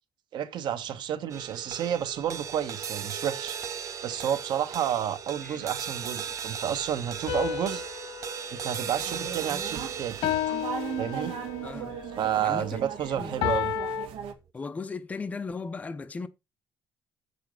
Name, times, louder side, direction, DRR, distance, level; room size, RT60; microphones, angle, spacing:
voice 1, 0.3-3.7 4.0-7.8 8.5-10.2 11.0-11.3 12.2-13.7, right 9 dB, 60° right, 1.2 m, -30 dB
sound 1, 1.3-13.8, right 7 dB, 40° right, 0.7 m, -38 dB
sound 2, 7.3-9.7 10.2-11.8 13.4-14.1, left 9 dB, 85° left, 1.6 m, -32 dB
sound 3, 8.9-14.3, right 8 dB, 90° right, 1.8 m, -38 dB
voice 2, 11.6-12.0 12.4-12.8 13.1-13.4 14.5-16.3, left 4 dB, 15° left, 0.6 m, -36 dB
7.7 x 6.9 x 5.3 m
cardioid pair, 175°, 9 cm